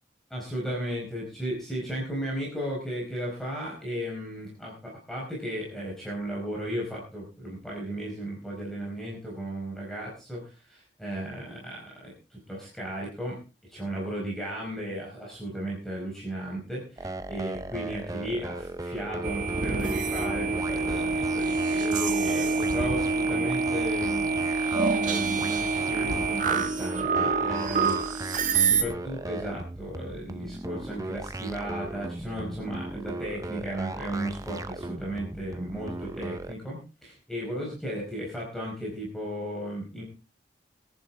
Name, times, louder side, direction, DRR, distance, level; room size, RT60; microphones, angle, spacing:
voice 1, 0.3-13.4 13.7-24.5 24.8-40.0, right 1 dB, ahead, -4 dB, 4.6 m, -35 dB
sound 1, 17.0-36.5, right 2 dB, 20° right, 0.7 m, -37 dB
sound 2, 19.2-28.8, right 4 dB, 45° right, 1.8 m, -26 dB
22.0 x 10.0 x 3.6 m, 0.33 s
head